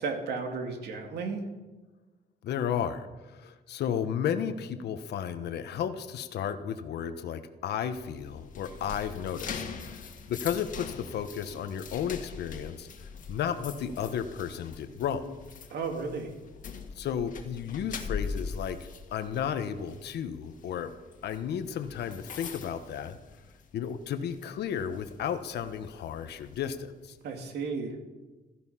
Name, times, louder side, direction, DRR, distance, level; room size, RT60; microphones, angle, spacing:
voice 1, 0.0-1.4 15.7-16.3 27.2-27.9, right 4 dB, 75° right, 3 dB, 2.8 m, -33 dB
voice 2, 2.4-10.0 10.3-15.4 16.9-20.9 21.2-23.2 23.7-27.2, left 8 dB, 80° left, 9 dB, 1.2 m, -33 dB
sound 1, 7.9-23.8 24.2-24.4 24.9-26.6, left 5 dB, 50° left, 1.9 m, -42 dB
16.0 x 14.5 x 5.8 m, 1.2 s
cardioid pair, 150°, 17 cm